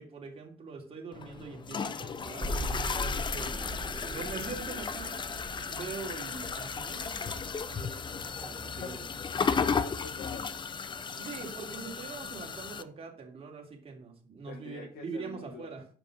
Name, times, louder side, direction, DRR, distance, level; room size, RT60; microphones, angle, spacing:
voice 1, 0.0-3.5 4.1-5.3 5.6-9.0 9.4-9.5 11.1-15.9, right 4 dB, 35° right, 0 dB, 2.8 m, -43 dB
sound 1, 1.1-12.8, left 6 dB, 30° left, 0.6 m, -35 dB
sound 2, 2.4-8.4 8.7-8.8, equal, 15° right, 1.2 m, -39 dB
voice 2, 8.8-9.1 9.4-10.5 14.5-15.7, left 5 dB, 65° left, 2 dB, 1.7 m, -45 dB
7.1 x 5.3 x 6.4 m, 0.43 s
cardioid pair, 110°, 17 cm